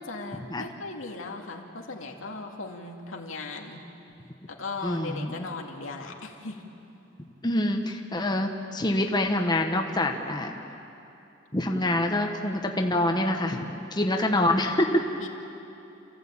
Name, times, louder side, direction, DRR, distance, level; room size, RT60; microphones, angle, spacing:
voice 1, 0.0-3.8 4.5-6.7 15.2-15.3, left 3 dB, 85° left, 1 dB, 2.3 m, -37 dB
voice 2, 4.8-5.5 7.4-10.5 11.5-15.0, left 1 dB, 20° left, 3 dB, 1.2 m, -26 dB
28.5 x 15.0 x 8.7 m, 2.9 s
head